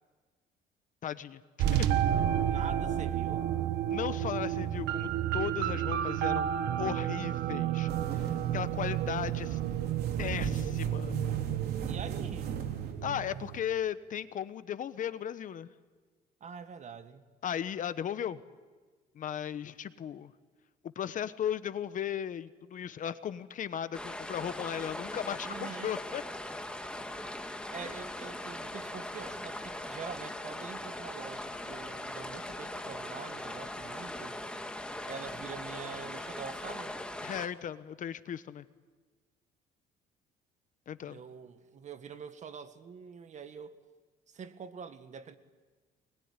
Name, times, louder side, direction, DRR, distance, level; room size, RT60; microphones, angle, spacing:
voice 1, 1.0-1.4 1.7-1.9 3.9-6.5 6.8-9.6 10.2-11.1 13.0-15.7 17.4-18.4 19.1-20.3 20.9-26.2 27.8-27.9 37.2-38.6 40.9-41.2, left 9 dB, 50° left, 1.1 m, -36 dB
sound 1, 1.6-13.6, right 11 dB, 85° right, 1.3 m, -31 dB
voice 2, 2.4-3.5 11.9-12.6 16.4-17.2 25.4-25.9 27.7-34.4 35.0-37.0 41.1-43.8 44.3-45.3, right 6 dB, 45° right, 1.8 m, -45 dB
sound 2, 7.9-12.9, right 6 dB, 70° right, 4.0 m, -39 dB
sound 3, 23.9-37.5, left 1 dB, 5° left, 2.0 m, -40 dB
23.5 x 21.5 x 9.8 m
cardioid pair, 110°, 17 cm